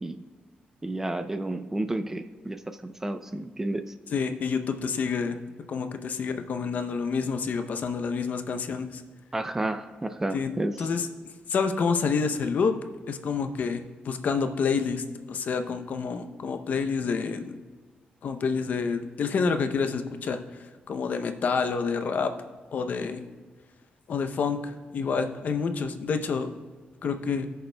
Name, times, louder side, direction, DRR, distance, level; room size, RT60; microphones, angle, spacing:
voice 1, 0.8-3.8 9.3-10.7, right 1 dB, 15° right, 9 dB, 0.4 m, -31 dB
voice 2, 4.1-5.4 5.7-9.0 10.3-10.5 10.8-11.1 11.5-12.7 13.1-17.6 18.2-20.4 20.9-22.3 22.7-23.2 24.1-26.5 27.0-27.5, left 5 dB, 55° left, 7 dB, 0.6 m, -28 dB
18.5 x 6.6 x 2.2 m, 1.5 s
wide cardioid pair, 150°, 3 cm